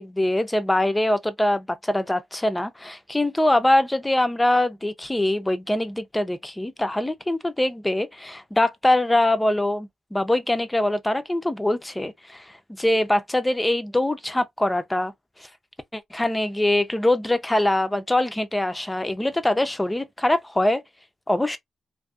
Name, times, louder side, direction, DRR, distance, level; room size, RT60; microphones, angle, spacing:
voice 1, 0.0-15.1 15.9-20.8 21.3-21.6, left 1 dB, 10° left, 0.4 m, -23 dB
2.5 x 2.5 x 2.3 m
cardioid pair, 100°, 0 cm